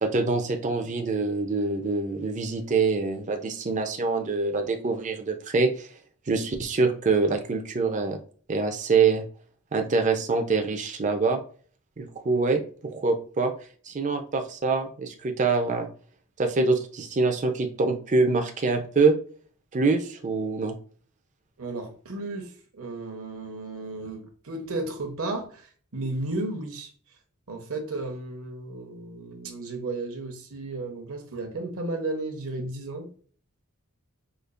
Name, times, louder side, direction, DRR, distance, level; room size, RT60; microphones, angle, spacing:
voice 1, 0.0-5.9 6.3-8.2 8.5-9.2 9.7-11.4 12.0-12.6 12.9-13.5 13.9-15.9 16.4-19.1 19.7-20.7, right 4 dB, 35° right, 0.5 m, -25 dB
voice 2, 21.6-26.9 27.5-33.1, right 2 dB, 65° right, 0.9 m, -34 dB
5.1 x 2.4 x 2.4 m
head